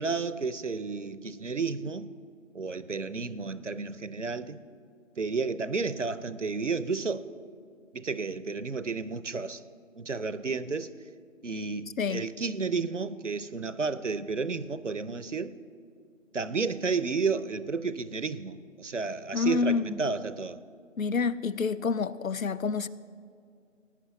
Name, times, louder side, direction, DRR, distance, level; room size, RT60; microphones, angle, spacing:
voice 1, 0.0-2.1 2.5-4.6 5.2-7.3 7.9-9.6 10.0-10.9 11.4-15.5 16.3-20.6, right 4 dB, 65° right, 0.6 m, -32 dB
voice 2, 19.3-20.0 21.0-22.9, left 5 dB, 90° left, 0.6 m, -28 dB
19.5 x 9.9 x 3.0 m
figure-of-eight pair, 180°, 39 cm